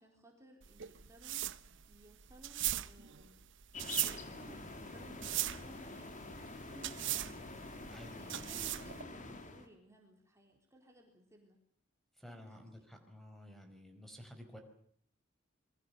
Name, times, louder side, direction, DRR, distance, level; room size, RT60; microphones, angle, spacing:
voice 1, 0.0-3.4 3.9-7.4 8.0-11.6 12.2-12.9, right 1 dB, 15° right, 1 dB, 4.2 m, -59 dB
sound 1, 0.6-9.0, right 14 dB, 65° right, 1.0 m, -39 dB
sound 2, 3.7-9.7, left 2 dB, 40° left, 3.1 m, -47 dB
voice 2, 7.9-8.4 12.2-14.6, left 1 dB, ahead, 5 dB, 4.9 m, -52 dB
28.0 x 22.5 x 6.9 m, 0.63 s
head